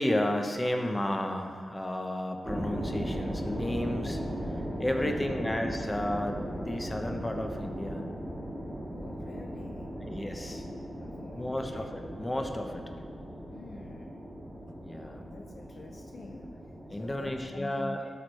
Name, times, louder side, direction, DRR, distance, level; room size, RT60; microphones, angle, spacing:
voice 1, 0.0-4.2 4.8-8.0 8.6-8.7 10.0-10.8 11.4-12.8 14.8-15.2 16.9-18.0, left 1 dB, 20° left, 4 dB, 0.9 m, -32 dB
sound 1, 2.4-17.6, equal, 15° right, 1.6 m, -38 dB
voice 2, 4.9-5.5 8.8-10.0 10.9-11.9 13.5-14.3 15.0-18.1, left 2 dB, 50° left, 2 dB, 0.5 m, -46 dB
12.0 x 4.4 x 3.2 m, 2.2 s
cardioid pair, 55°, 0 cm